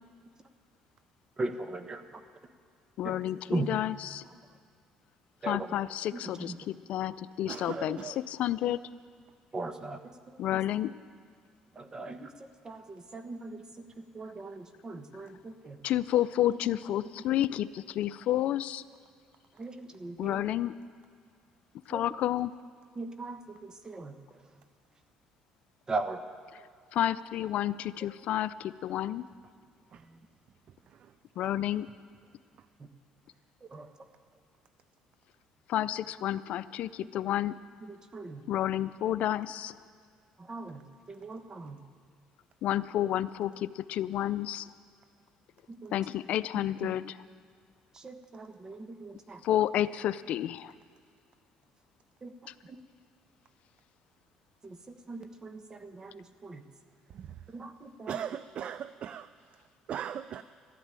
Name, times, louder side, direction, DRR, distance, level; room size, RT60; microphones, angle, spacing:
voice 1, 1.4-2.2 3.0-3.8 4.2-4.6 5.4-5.8 6.1-6.6 7.7-8.0 9.5-10.6 11.7-15.8 16.5-16.6 19.5-20.4 21.9-22.1 22.9-24.6 25.9-26.3 29.9-30.3 32.8-32.9 33.6-34.1 37.8-38.5 40.4-41.8 45.7-46.0 46.5-46.9 47.9-49.4 52.2-52.3 52.7-52.8 54.6-56.6 57.5-58.2, right 3 dB, 30° right, 1.2 m, -40 dB
voice 2, 3.0-3.4 3.7-4.3 5.5-8.0 8.4-8.8 10.4-10.9 15.8-18.8 20.2-20.7 21.9-22.5 26.9-29.2 31.4-31.9 35.7-37.5 38.5-39.7 42.6-44.7 45.9-47.0 49.4-50.7, left 12 dB, 65° left, 0.5 m, -30 dB
voice 3, 7.5-8.2 29.9-30.1 30.7-31.8 32.6-32.7 57.1-57.5 58.1-60.4, right 9 dB, 55° right, 0.4 m, -41 dB
13.5 x 12.0 x 9.0 m
cardioid pair, 90°, 2 cm